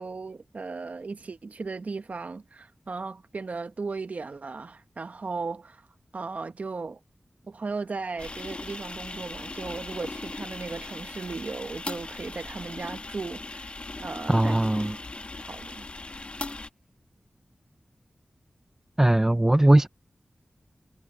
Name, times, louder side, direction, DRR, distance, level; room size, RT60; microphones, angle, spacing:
voice 1, 0.0-5.8 6.1-7.0 7.5-14.9 15.4-15.8, right 4 dB, 65° right, 1.2 m, -36 dB
sound 1, 8.2-16.7, left 2 dB, 45° left, 1.4 m, -38 dB
voice 2, 14.3-15.0 19.0-19.9, right 1 dB, 15° right, 0.4 m, -19 dB
wide cardioid pair, 55°, 3 cm